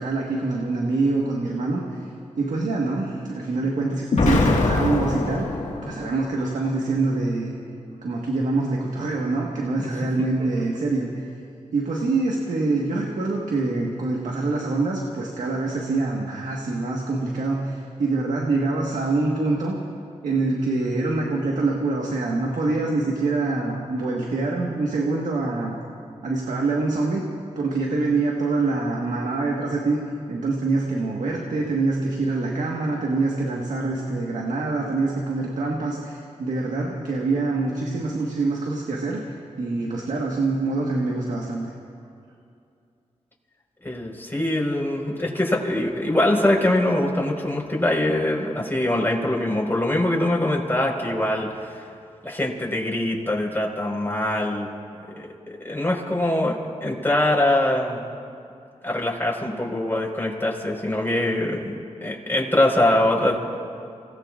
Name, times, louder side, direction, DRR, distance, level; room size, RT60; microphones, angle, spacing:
voice 1, 0.0-2.0 2.4-5.5 5.8-7.5 8.0-11.3 11.7-19.8 20.2-25.8 26.2-27.2 27.5-30.0 30.3-41.7, right 3 dB, 85° right, -1 dB, 1.6 m, -25 dB
Explosion, 4.1-6.3, left 3 dB, 75° left, 1.8 m, -22 dB
voice 2, 43.8-51.8 52.2-54.7 55.2-58.0 58.8-61.7 62.0-63.4, left 1 dB, 15° left, -2 dB, 4.6 m, -23 dB
29.5 x 18.5 x 2.5 m, 2.5 s
cardioid pair, 45°, 13 cm